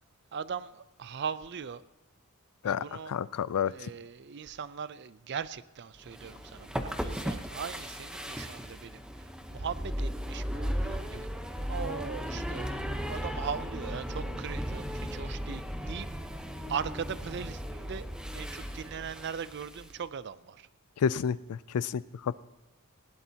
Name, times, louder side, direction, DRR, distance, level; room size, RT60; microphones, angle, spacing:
voice 1, 0.3-1.8 2.6-3.1 3.7-11.3 11.7-16.1 16.7-18.1 18.3-20.7, right 6 dB, 50° right, 16 dB, 0.4 m, -39 dB
voice 2, 2.6-3.7 21.0-22.3, left 7 dB, 85° left, 18 dB, 0.4 m, -30 dB
sound 1, 6.0-19.9, equal, 5° right, 0.9 m, -36 dB
19.5 x 16.5 x 2.8 m, 0.98 s
head